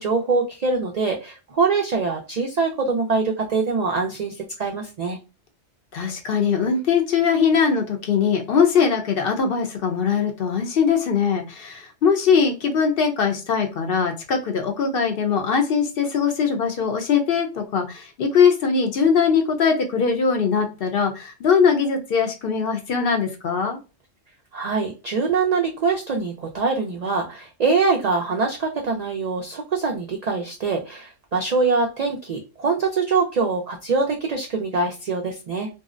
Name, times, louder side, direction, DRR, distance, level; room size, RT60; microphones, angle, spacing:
voice 1, 0.0-5.2 24.5-35.7, right 4 dB, 70° right, 1 dB, 0.4 m, -23 dB
voice 2, 5.9-23.8, left 6 dB, 60° left, 5 dB, 0.7 m, -21 dB
2.6 x 2.0 x 2.3 m, 0.31 s
omnidirectional pair, 1.2 m